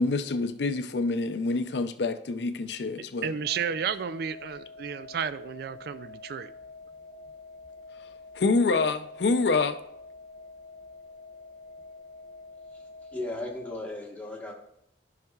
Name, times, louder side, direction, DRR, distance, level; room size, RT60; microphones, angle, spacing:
voice 1, 0.0-3.3 8.4-9.8, left 3 dB, 70° left, 0.5 m, -26 dB
voice 2, 3.2-6.5, right 7 dB, 60° right, 0.3 m, -32 dB
sound 1, 3.4-13.9, left 3 dB, 45° left, 1.1 m, -47 dB
voice 3, 13.1-14.5, left 2 dB, 10° left, 1.3 m, -36 dB
13.5 x 5.7 x 2.3 m
head